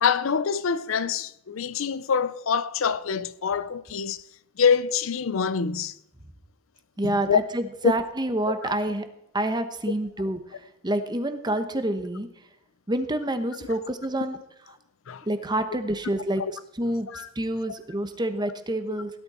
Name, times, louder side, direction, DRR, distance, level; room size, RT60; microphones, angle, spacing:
voice 1, 0.0-4.2 4.6-5.9 7.0-7.4 7.8-7.9 8.5-8.7 15.1-15.2 16.4-16.5 17.1-17.3 18.9-19.0, left 6 dB, 80° left, 0.5 m, -25 dB
voice 2, 7.0-9.0 9.3-10.6 10.8-12.3 12.9-14.4 15.2-16.4 16.8-19.1, right 1 dB, 20° right, 1.1 m, -28 dB
17.0 x 11.0 x 4.3 m
head